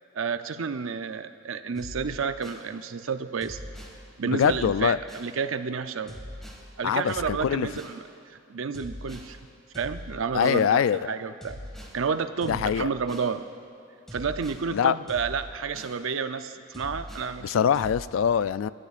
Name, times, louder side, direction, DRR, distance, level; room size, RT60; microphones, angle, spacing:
voice 1, 0.1-3.6 4.2-6.1 6.8-9.4 9.7-11.6 11.9-13.4 14.1-17.6, right 5 dB, 75° right, 10 dB, 0.6 m, -30 dB
sound 1, 1.8-2.7 3.4-4.0 4.4-5.3 6.1-6.7 7.1-8.0 8.7-9.3 9.7-10.7 11.4-12.0 12.4-13.3 14.1-14.6 15.1-16.0 16.7-17.3 17.7-18.0, equal, ahead, 2.0 m, -42 dB
voice 2, 4.3-5.0 6.8-7.7 10.3-11.1 12.5-12.9 14.7-15.0 17.4-18.7, left 8 dB, 75° left, 16 dB, 0.3 m, -23 dB
25.5 x 13.5 x 2.5 m, 2.6 s
head